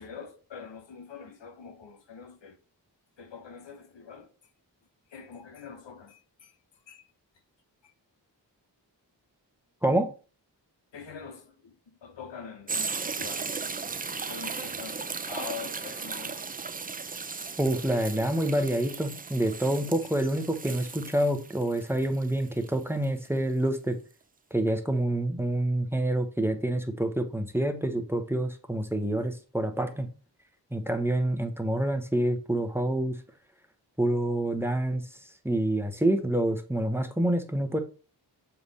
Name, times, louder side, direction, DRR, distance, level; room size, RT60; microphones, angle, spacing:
voice 1, 0.0-2.6 3.2-4.3 5.1-6.2 6.9-7.0 10.9-11.7 12.0-13.5 14.2-16.4, left 6 dB, 85° left, 0.9 m, -43 dB
sound 1, 12.7-23.3 23.7-23.8, right 4 dB, 20° right, 0.4 m, -36 dB
voice 2, 17.6-24.0 24.5-30.1 30.7-33.2 34.0-35.0 35.4-37.8, right 1 dB, 5° right, 0.9 m, -27 dB
6.9 x 3.5 x 4.0 m
cardioid pair, 50°, 43 cm